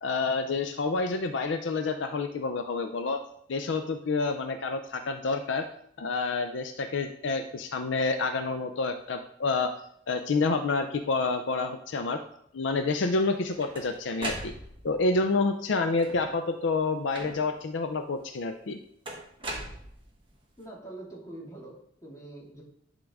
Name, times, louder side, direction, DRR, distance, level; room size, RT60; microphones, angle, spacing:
voice 1, 0.0-3.2 3.5-5.7 6.0-9.7 10.1-12.2 12.5-14.5 14.8-18.8, left 3 dB, 70° left, 7 dB, 0.5 m, -28 dB
sound 1, 13.2-15.0 15.9-16.4 17.1-17.7 19.1-20.3, right 1 dB, 30° right, 1.2 m, -39 dB
voice 2, 20.6-22.6, right 2 dB, 20° left, -4 dB, 2.1 m, -44 dB
11.0 x 3.8 x 3.6 m, 0.70 s
head